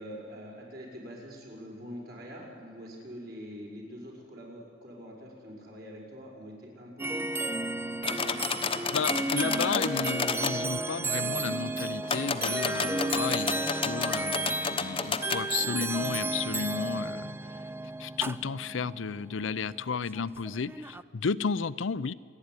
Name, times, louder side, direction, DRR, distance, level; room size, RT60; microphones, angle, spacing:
voice 1, 0.0-7.2, equal, 55° right, -2 dB, 6.3 m, -44 dB
sound 1, 7.0-21.0, right 2 dB, 10° right, 0.5 m, -33 dB
sound 2, 8.0-10.6 12.0-15.4, left 5 dB, 30° left, 1.0 m, -31 dB
voice 2, 8.9-17.6 18.0-22.1, left 5 dB, 85° left, 15 dB, 0.6 m, -33 dB
27.0 x 11.0 x 9.8 m, 2.4 s
head